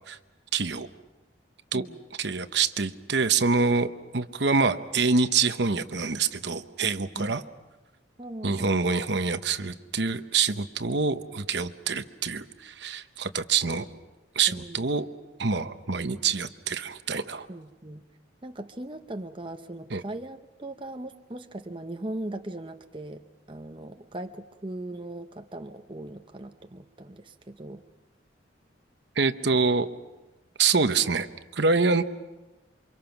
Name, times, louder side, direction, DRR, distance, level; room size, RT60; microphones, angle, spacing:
voice 1, 0.5-0.9 1.7-1.9 2.2-7.4 8.4-13.9 14.3-15.1 15.4-17.5 19.9-20.0 29.2-29.9 30.6-31.3 31.5-32.0, right 4 dB, 60° right, 10 dB, 0.9 m, -26 dB
voice 2, 8.2-8.8 14.5-15.0 17.5-18.0 18.4-27.8 29.4-29.6, right 1 dB, 25° right, 6 dB, 0.8 m, -39 dB
28.5 x 25.0 x 5.9 m, 1.1 s
head